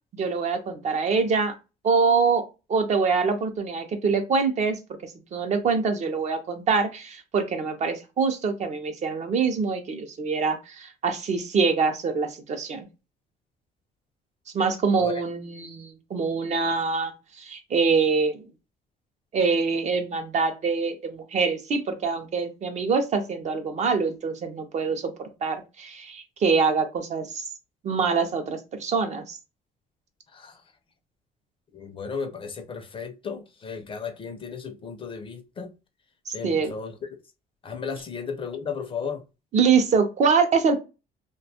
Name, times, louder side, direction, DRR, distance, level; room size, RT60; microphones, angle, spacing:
voice 1, 0.1-1.5 1.8-12.9 14.5-18.4 19.3-27.4 27.8-29.4 36.3-36.7 39.5-40.8, right 5 dB, 45° right, 0.5 m, -25 dB
voice 2, 31.7-35.7 36.3-37.0 37.6-39.2, left 5 dB, 30° left, 0.4 m, -34 dB
2.5 x 2.2 x 2.7 m
cardioid pair, 110°, 17 cm